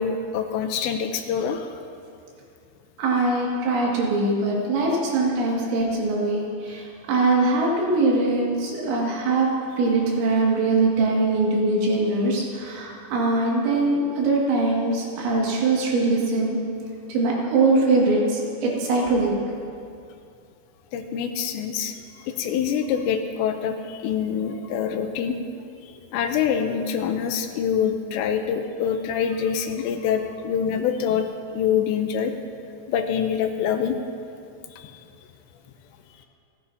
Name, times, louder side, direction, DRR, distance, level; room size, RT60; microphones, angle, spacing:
voice 1, 0.0-1.8 20.9-22.0 22.2-25.4 26.1-31.3 31.5-32.3 32.9-34.0 34.7-35.0, left 7 dB, 85° left, 6 dB, 2.8 m, -25 dB
voice 2, 3.0-9.5 9.8-16.6 17.1-19.3, right 3 dB, 80° right, -3 dB, 4.5 m, -22 dB
28.5 x 10.5 x 2.8 m, 2.5 s
omnidirectional pair, 5.3 m